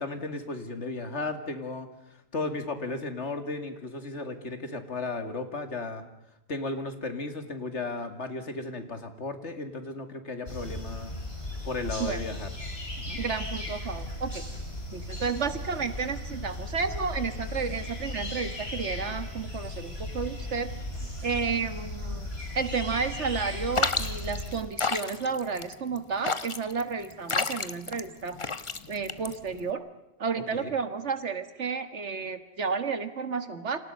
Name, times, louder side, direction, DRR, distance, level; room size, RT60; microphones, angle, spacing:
voice 1, 0.0-6.1 6.5-11.1 11.6-12.5 13.0-13.2 30.5-30.7, left 3 dB, 85° left, 8 dB, 2.5 m, -35 dB
sound 1, 10.5-24.5, left 1 dB, 60° left, 5.0 m, -36 dB
voice 2, 13.2-14.4 14.9-20.7 21.0-22.3 22.5-28.4 28.9-29.9 30.2-33.8, right 5 dB, 85° right, 10 dB, 1.9 m, -32 dB
sound 2, 23.7-29.7, left 4 dB, 30° left, 1.0 m, -31 dB
29.0 x 26.5 x 5.5 m, 0.87 s
omnidirectional pair, 1.2 m